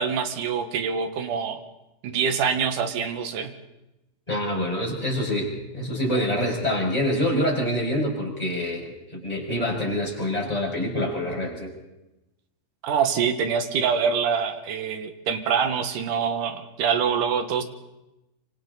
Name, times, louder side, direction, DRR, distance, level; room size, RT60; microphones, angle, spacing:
voice 1, 0.0-1.6 2.0-3.5 12.8-17.6, right 6 dB, 65° right, 7 dB, 2.8 m, -25 dB
voice 2, 4.3-11.7, left 1 dB, 10° left, -2 dB, 5.7 m, -26 dB
26.0 x 26.0 x 4.1 m, 0.96 s
omnidirectional pair, 4.3 m